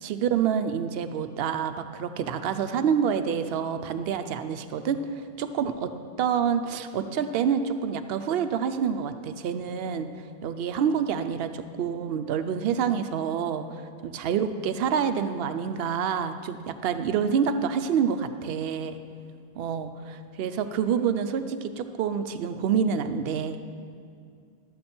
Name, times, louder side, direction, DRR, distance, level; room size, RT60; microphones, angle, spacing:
voice 1, 0.0-5.9 6.2-10.1 10.4-19.0 19.6-23.6, right 7 dB, 70° right, 9 dB, 0.8 m, -27 dB
12.0 x 7.7 x 4.3 m, 2.3 s
omnidirectional pair, 1.1 m